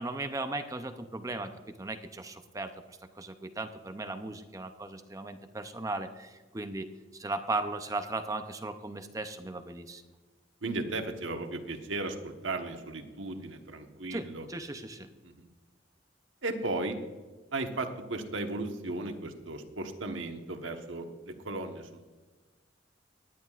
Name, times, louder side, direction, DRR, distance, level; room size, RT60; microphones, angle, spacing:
voice 1, 0.0-6.9 7.1-10.0 14.1-15.1, right 2 dB, 15° right, 8 dB, 0.5 m, -37 dB
voice 2, 10.6-14.5 15.2-15.5 16.4-17.0 17.5-22.0, right 2 dB, 80° right, 5 dB, 1.2 m, -36 dB
18.5 x 10.5 x 2.5 m, 1.3 s
head